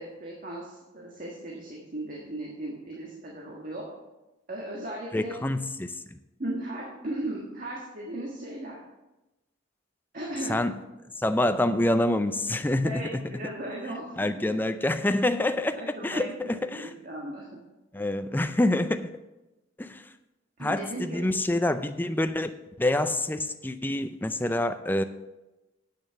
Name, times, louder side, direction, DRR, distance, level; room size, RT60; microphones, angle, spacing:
voice 1, 0.0-3.8 4.5-5.4 6.4-8.8 10.1-10.6 12.8-14.6 15.8-17.6 20.6-21.2, right 1 dB, 45° right, -3 dB, 1.6 m, -37 dB
voice 2, 5.1-6.2 10.5-10.8 11.2-13.3 14.2-16.9 17.9-19.1 19.8-20.1 20.6-25.0, left 1 dB, 10° left, 10 dB, 0.4 m, -27 dB
8.4 x 6.5 x 6.9 m, 1.0 s
head